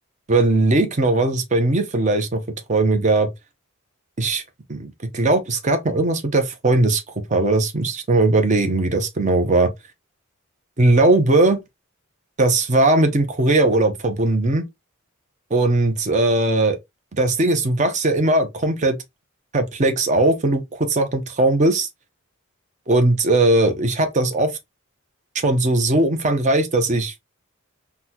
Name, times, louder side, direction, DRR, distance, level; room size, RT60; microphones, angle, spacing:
voice 1, 0.3-2.4 2.7-3.3 4.2-4.4 4.7-7.0 7.3-9.7 10.8-11.6 12.4-14.6 15.5-16.8 17.1-19.0 19.5-21.9 22.9-24.5 25.4-27.2, right 2 dB, 35° right, 0.6 m, -19 dB
4.0 x 2.2 x 2.7 m
head